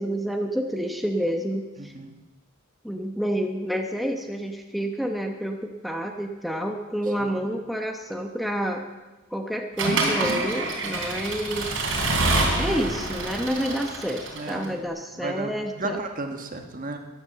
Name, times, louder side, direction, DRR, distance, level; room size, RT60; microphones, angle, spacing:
voice 1, 0.0-1.9 2.8-8.9 9.3-11.8 12.5-16.0, equal, ahead, 2 dB, 1.0 m, -29 dB
Accelerating revving vroom / Mechanisms, 9.8-14.7, right 2 dB, 70° right, 3.5 m, -26 dB
voice 2, 14.3-14.8 15.2-17.0, right 2 dB, 40° right, 5 dB, 1.5 m, -33 dB
14.5 x 10.5 x 7.2 m, 1.2 s
head